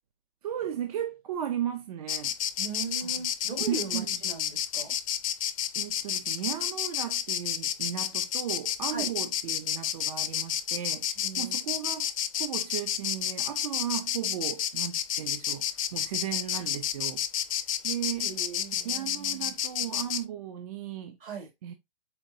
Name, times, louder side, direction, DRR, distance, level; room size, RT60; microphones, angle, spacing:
voice 1, 0.4-2.3 3.0-3.1 3.7-4.2 5.8-17.2 17.8-18.4 18.8-21.2 21.6-21.7, right 10 dB, 40° right, 0.4 m, -36 dB
Insect, 2.1-20.2, left 10 dB, 35° left, 0.5 m, -30 dB
voice 2, 2.6-5.0 8.9-9.1 11.2-11.6 18.2-19.6 21.2-21.5, right 4 dB, 70° right, 2.8 m, -39 dB
4.3 x 3.7 x 2.6 m
hypercardioid pair, 140°, 29 cm